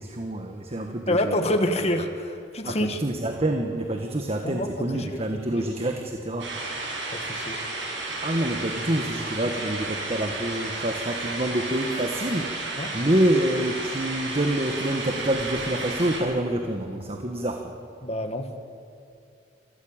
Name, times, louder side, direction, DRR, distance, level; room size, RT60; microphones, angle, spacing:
voice 1, 0.0-1.3 2.6-6.5 8.2-12.5 12.9-17.7, right 1 dB, 35° right, 3 dB, 1.5 m, -27 dB
voice 2, 1.1-3.0 4.4-5.3 7.1-7.6 12.8-12.9 18.0-18.5, left 1 dB, 35° left, 6 dB, 1.7 m, -27 dB
sound 1, 6.4-16.2, right 2 dB, 80° right, 7.6 m, -32 dB
28.0 x 14.0 x 8.9 m, 2.5 s
head